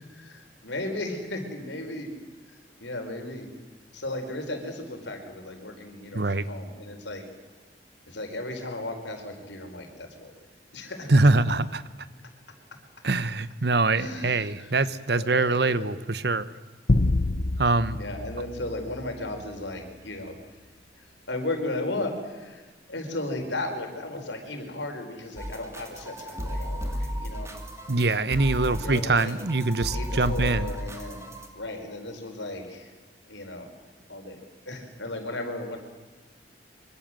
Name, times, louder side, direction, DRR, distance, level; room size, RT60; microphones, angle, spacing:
voice 1, 0.2-2.1 2.8-3.5 3.9-7.2 8.1-10.3 10.7-11.1 14.0-14.8 15.1-15.9 17.9-20.3 21.3-27.5 28.7-29.4 29.9-31.3 31.5-32.9 33.3-33.7 34.1-34.4 34.7-35.8, left 2 dB, 85° left, 4 dB, 4.9 m, -35 dB
voice 2, 6.1-6.4 11.1-11.8 13.0-16.5 17.6-18.0 27.9-30.7, right 3 dB, 65° right, 15 dB, 1.1 m, -23 dB
sound 1, 16.9-19.5, left 2 dB, 50° left, 0.8 m, -27 dB
sound 2, 25.4-31.5, equal, 15° right, 2.7 m, -34 dB
25.0 x 24.5 x 7.8 m, 1.3 s
head